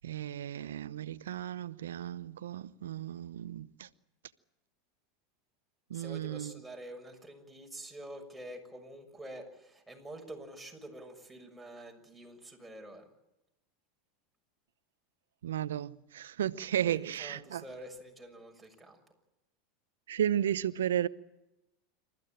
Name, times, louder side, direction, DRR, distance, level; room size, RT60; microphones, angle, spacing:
voice 1, 0.0-3.9 5.9-6.6 15.4-17.6 20.1-21.1, right 10 dB, 80° right, 0.8 m, -34 dB
voice 2, 5.9-13.1 16.8-19.0, right 1 dB, 5° right, 6.7 m, -47 dB
27.0 x 15.0 x 8.9 m
hypercardioid pair, 95°, 0 cm